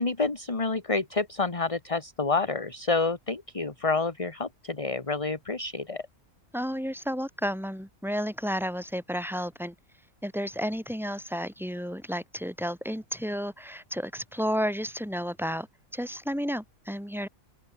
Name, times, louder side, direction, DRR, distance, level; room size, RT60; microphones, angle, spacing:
voice 1, 0.0-6.0, left 3 dB, 25° left, 1.7 m, -28 dB
voice 2, 6.5-9.7 10.2-15.7 15.9-17.3, equal, ahead, 5.9 m, -32 dB
open air
omnidirectional pair, 1.4 m